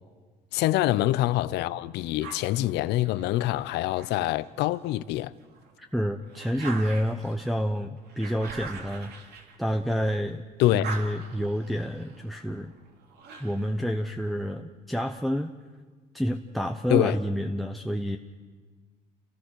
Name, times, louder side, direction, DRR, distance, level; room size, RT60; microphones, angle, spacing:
voice 1, 0.5-5.3 10.6-10.9 16.9-17.2, left 16 dB, 85° left, 0.7 m, -25 dB
sound 1, 2.2-4.9 5.4-10.2 10.5-13.8, right 4 dB, 70° right, 3.4 m, -43 dB
voice 2, 5.8-9.1 9.6-10.4 10.7-12.7 13.4-15.5 16.1-18.2, equal, ahead, 0.9 m, -28 dB
28.5 x 18.0 x 6.4 m
cardioid pair, 110°, 17 cm